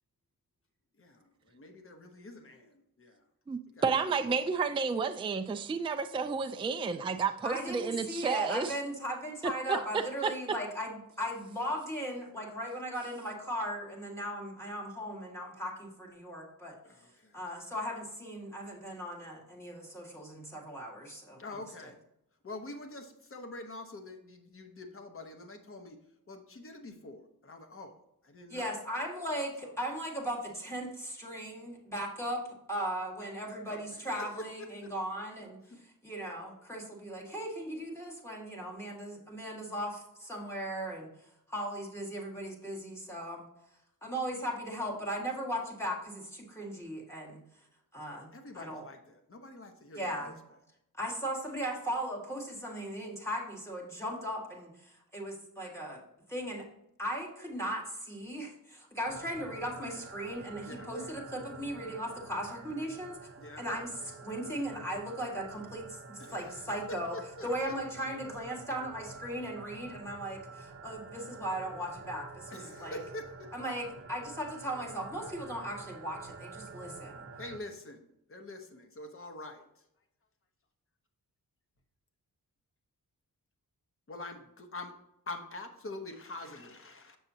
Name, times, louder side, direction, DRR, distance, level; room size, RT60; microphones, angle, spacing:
voice 1, 1.0-2.7 3.0-3.1 3.8-4.1 16.8-17.3 21.4-22.0 22.4-26.0 26.3-27.9 28.2-28.7 33.7-34.3 34.8-34.9 35.7-35.8 48.3-50.3 60.6-60.9 63.4-63.6 66.2-66.7 67.1-67.7 72.5-73.5 77.4-79.7 84.1-84.9 85.3-87.2, left 2 dB, 35° left, 5 dB, 1.0 m, -45 dB
voice 2, 3.5-8.7 9.7-10.3, right 5 dB, 15° right, 6 dB, 0.3 m, -31 dB
voice 3, 7.4-16.8 17.3-21.4 28.5-32.4 32.7-35.6 36.0-41.1 41.5-43.5 44.0-47.4 47.9-48.8 49.9-50.4 51.0-56.0 56.3-56.7 57.0-63.2 63.6-67.2 67.4-73.0 73.5-77.3, equal, 5° left, -2 dB, 1.8 m, -37 dB
sound 1, 59.1-77.6, right 4 dB, 35° right, 0.8 m, -48 dB
7.2 x 6.5 x 2.8 m, 0.82 s
wide cardioid pair, 130°, 36 cm